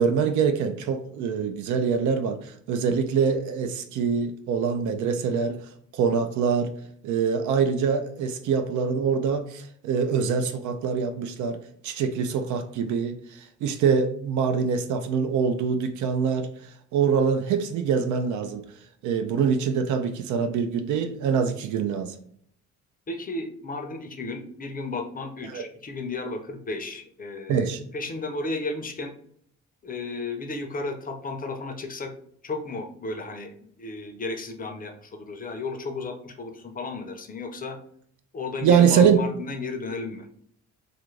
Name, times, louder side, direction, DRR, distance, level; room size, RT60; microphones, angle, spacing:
voice 1, 0.0-5.6 5.9-6.7 7.0-11.6 11.8-13.1 13.6-16.5 16.9-18.6 19.0-22.1 25.4-25.6 27.5-27.8 38.6-39.2, right 6 dB, 80° right, 0.5 m, -24 dB
voice 2, 23.1-27.7 27.9-29.1 29.8-32.1 32.4-33.5 33.8-37.8 38.3-40.3, left 3 dB, 30° left, 0.5 m, -33 dB
2.5 x 2.4 x 3.1 m
cardioid pair, 90°, 30 cm